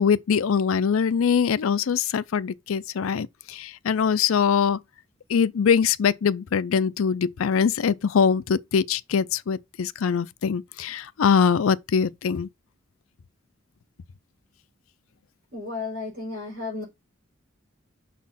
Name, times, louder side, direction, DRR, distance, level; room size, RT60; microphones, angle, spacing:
voice 1, 0.0-4.8 5.3-12.5, left 6 dB, 90° left, 0.4 m, -23 dB
voice 2, 15.5-16.8, left 3 dB, 50° right, 4.6 m, -33 dB
6.4 x 4.2 x 5.7 m
head